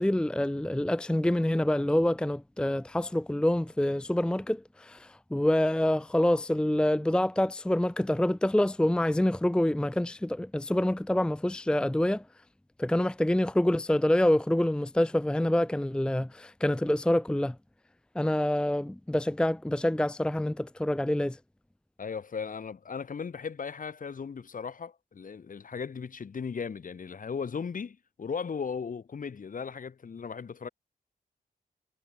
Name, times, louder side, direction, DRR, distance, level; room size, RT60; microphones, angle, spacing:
voice 1, 0.0-12.3 12.8-17.6 18.1-21.4, left 1 dB, 5° left, 0.6 m, -26 dB
voice 2, 22.0-30.7, left 6 dB, 60° left, 3.7 m, -37 dB
wide cardioid pair, 90°, 16 cm